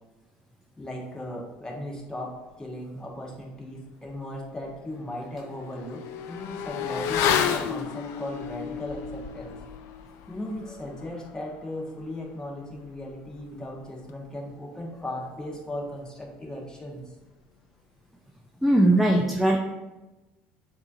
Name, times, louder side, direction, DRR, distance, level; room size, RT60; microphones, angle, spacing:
voice 1, 0.8-9.6 10.3-17.0, left 1 dB, 15° left, -1 dB, 1.2 m, -37 dB
Motorcycle / Accelerating revving vroom, 4.1-4.2 4.6-14.6 14.8-15.0, left 8 dB, 60° left, 0.4 m, -33 dB
voice 2, 18.6-19.6, right 1 dB, ahead, 0 dB, 0.5 m, -19 dB
6.7 x 2.8 x 2.7 m, 1.1 s
hypercardioid pair, 80°, 5 cm